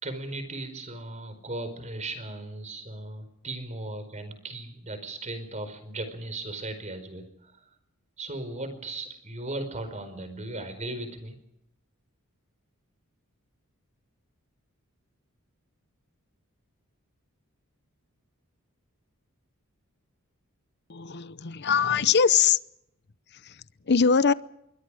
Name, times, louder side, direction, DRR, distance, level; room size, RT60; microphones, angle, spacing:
voice 1, 0.0-7.6 8.2-11.4, right 2 dB, 35° right, 4.7 m, -37 dB
voice 2, 20.9-22.6 23.3-24.3, left 6 dB, 50° left, 0.8 m, -22 dB
26.0 x 23.0 x 5.0 m
head